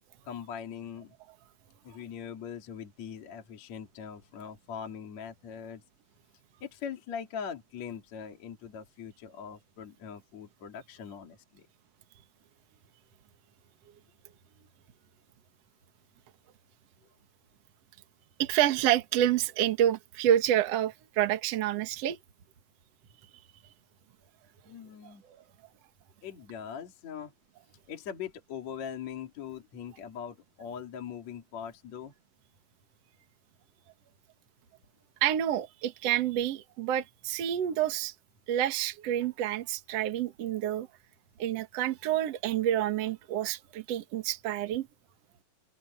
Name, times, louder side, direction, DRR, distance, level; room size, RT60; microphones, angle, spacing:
voice 1, 0.2-1.1 1.8-5.8 6.6-11.7 24.7-25.2 26.2-27.3 27.9-32.1, left 7 dB, 45° left, 3.4 m, -41 dB
voice 2, 18.4-22.2 25.0-25.1 35.2-38.1 38.5-40.9 41.4-44.9, right 11 dB, 55° right, 1.9 m, -28 dB
open air
omnidirectional pair, 4.7 m